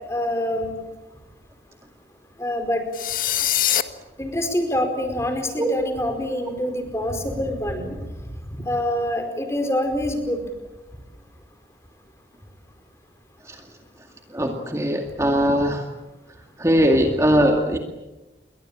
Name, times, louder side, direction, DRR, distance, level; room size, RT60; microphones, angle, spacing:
voice 1, 0.1-0.7 2.4-2.8 4.2-7.9 8.5-10.4, left 1 dB, 15° left, 6 dB, 4.7 m, -25 dB
sound 1, 2.9-3.8, left 11 dB, 50° left, 1.5 m, -22 dB
voice 2, 14.3-15.8 16.6-17.8, equal, 15° right, 3 dB, 2.1 m, -20 dB
29.0 x 23.0 x 8.9 m, 1.1 s
head